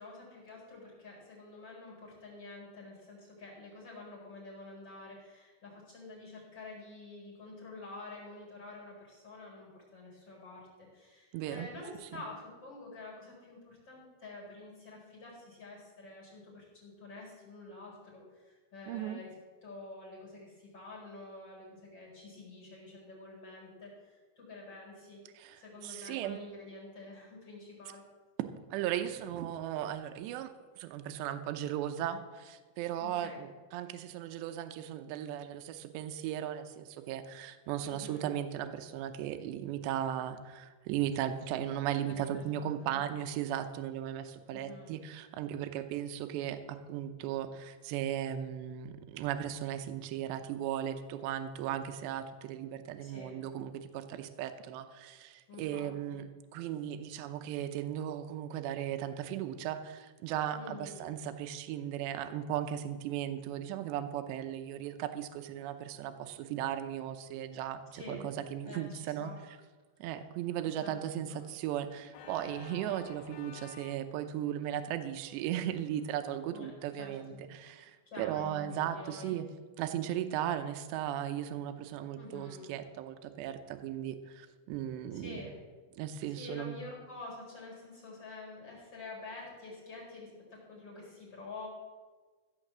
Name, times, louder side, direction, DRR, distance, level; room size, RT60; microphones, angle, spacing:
voice 1, 0.0-19.3 19.6-25.2 25.5-28.0 33.0-33.4 37.8-38.3 42.1-43.0 44.5-44.9 53.0-53.4 55.5-56.2 60.6-61.0 67.9-68.3 68.6-69.4 70.8-70.9 71.3-71.4 76.5-76.7 77.0-77.4 78.1-79.3 82.1-82.7 85.1-85.6 86.3-91.7, left 3 dB, 25° left, -3 dB, 5.0 m, -48 dB
voice 2, 11.3-11.7 18.9-19.2 25.4-26.4 28.7-56.2 56.5-69.3 70.0-79.5 79.8-85.5 86.0-86.8, right 11 dB, 80° right, 8 dB, 2.9 m, -37 dB
Organ, 72.1-76.9, left 7 dB, 80° left, 3.3 m, -54 dB
15.5 x 6.4 x 7.4 m, 1.3 s
omnidirectional pair, 5.3 m